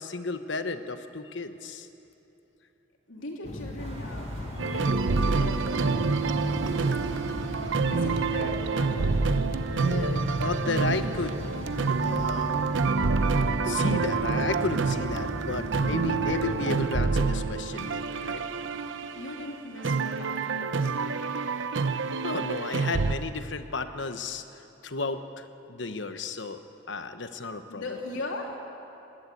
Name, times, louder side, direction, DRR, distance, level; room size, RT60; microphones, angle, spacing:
voice 1, 0.0-1.9 4.7-4.8 9.8-11.4 12.0-12.6 13.6-18.4 22.2-24.4 24.8-26.6 26.9-27.8, left 3 dB, 65° left, 9 dB, 1.1 m, -33 dB
voice 2, 3.1-6.2 7.6-9.2 19.1-21.4 27.7-28.6, left 2 dB, 80° left, 0 dB, 3.1 m, -39 dB
sound 1, 3.4-16.9, left 1 dB, 35° left, 0.8 m, -37 dB
sound 2, 3.8-19.6, right 1 dB, 30° right, 2.1 m, -46 dB
sound 3, 4.6-23.1, right 4 dB, 75° right, 0.7 m, -27 dB
29.0 x 11.5 x 8.6 m, 3.0 s
head